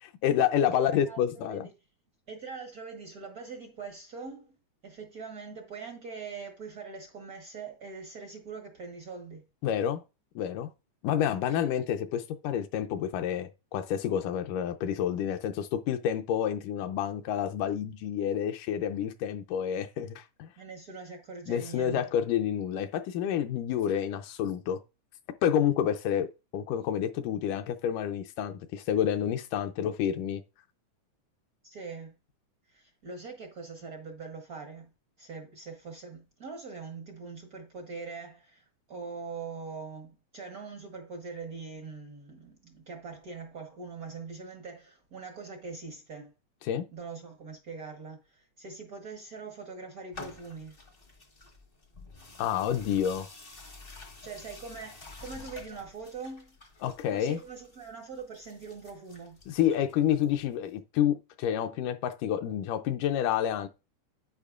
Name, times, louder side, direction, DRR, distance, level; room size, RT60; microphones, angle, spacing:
voice 1, 0.0-1.7 9.6-10.0 10.4-10.7 11.0-20.5 21.5-24.8 25.4-26.3 26.5-30.4 46.6-46.9 52.4-53.3 56.8-57.4 59.5-63.7, left 9 dB, 85° left, 2.2 m, -29 dB
voice 2, 0.7-1.6 2.3-4.6 4.8-9.4 11.3-11.7 20.6-22.0 31.6-32.2 32.7-34.9 35.2-46.3 46.9-50.8 54.2-56.5 57.1-59.4, right 4 dB, 75° right, 0.8 m, -42 dB
sound 1, 50.1-60.7, left 3 dB, 65° left, 0.5 m, -50 dB
10.5 x 8.9 x 2.5 m
omnidirectional pair, 3.6 m